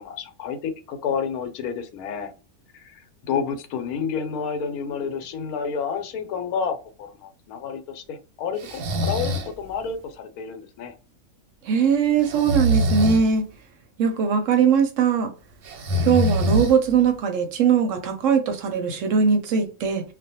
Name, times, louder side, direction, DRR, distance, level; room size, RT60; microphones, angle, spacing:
voice 1, 0.0-2.3 2.7-10.9, left 6 dB, 80° left, 1.1 m, -30 dB
Breathing, 8.6-9.5 12.2-13.2 15.6-17.0, equal, 90° right, 1.1 m, -24 dB
voice 2, 11.6-13.4 14.0-15.3 16.0-20.0, right 6 dB, 70° right, 0.8 m, -20 dB
2.4 x 2.1 x 2.6 m
omnidirectional pair, 1.6 m